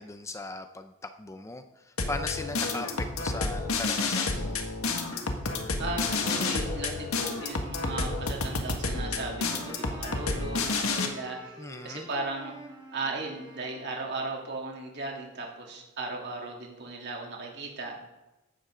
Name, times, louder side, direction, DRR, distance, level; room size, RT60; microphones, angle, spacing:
voice 1, 0.0-4.6 11.6-12.1, left 2 dB, 15° left, 8 dB, 0.6 m, -38 dB
sound 1, 2.0-11.1, left 3 dB, 70° left, 1.8 m, -30 dB
voice 2, 5.8-11.5 11.8-12.5 12.9-18.0, right 3 dB, 50° right, -1 dB, 3.1 m, -36 dB
Wind instrument woodwind instrument, 8.3-14.5, right 1 dB, 20° right, 2.3 m, -49 dB
15.5 x 12.0 x 3.8 m, 0.98 s
head